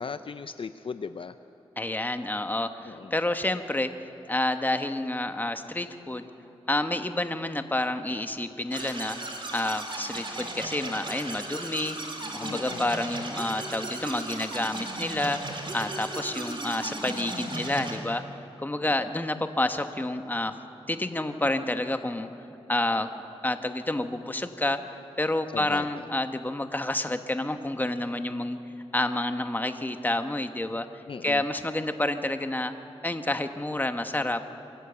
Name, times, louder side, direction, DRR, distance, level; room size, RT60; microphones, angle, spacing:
voice 1, 0.0-1.3 2.9-3.1 12.4-12.9 25.5-25.9 31.1-31.4, left 5 dB, 55° left, 11 dB, 0.5 m, -37 dB
voice 2, 1.8-3.9 4.3-6.3 6.7-9.2 9.5-12.0 12.3-15.4 15.7-18.2 18.6-20.6 20.9-22.3 22.7-23.1 23.4-24.8 25.2-28.6 28.9-30.9 31.2-32.7 33.0-34.4, left 1 dB, 15° left, 8 dB, 1.2 m, -29 dB
sound 1, 8.7-18.0, right 2 dB, 50° right, 3.4 m, -36 dB
25.0 x 14.0 x 8.1 m, 2.8 s
wide cardioid pair, 70°, 11 cm